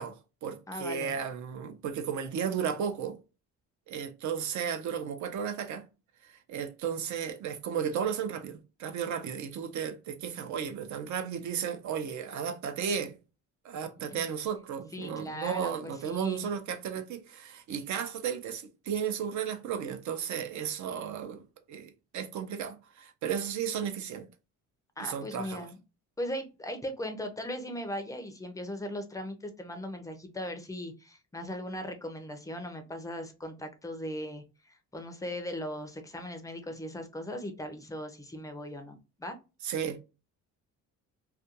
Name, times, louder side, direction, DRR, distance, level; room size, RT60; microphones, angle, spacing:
voice 1, 0.0-3.2 3.9-5.8 6.2-13.2 13.6-21.4 21.7-24.3 25.0-25.7 39.6-40.0, right 7 dB, 65° right, 0.6 m, -34 dB
voice 2, 0.7-1.2 14.1-14.3 14.9-16.5 25.0-25.8 26.2-39.3, equal, 10° left, 0.4 m, -38 dB
2.4 x 2.2 x 2.8 m
cardioid pair, 130°, 32 cm